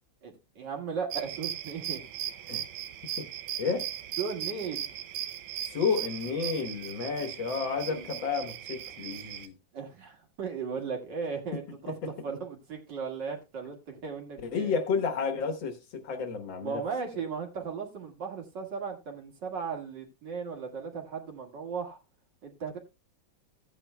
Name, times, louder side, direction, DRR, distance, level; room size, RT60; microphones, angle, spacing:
voice 1, 0.2-2.0 4.2-4.9 7.9-8.1 9.7-11.9 12.2-14.7 16.6-22.0 22.4-22.8, right 5 dB, 60° right, 2.5 m, -36 dB
sound 1, 1.1-9.5, right 11 dB, 80° right, 1.5 m, -38 dB
voice 2, 3.6-3.9 5.7-9.6 11.9-12.0 14.4-16.8, left 5 dB, 70° left, 2.0 m, -31 dB
16.0 x 9.0 x 2.2 m
omnidirectional pair, 2.2 m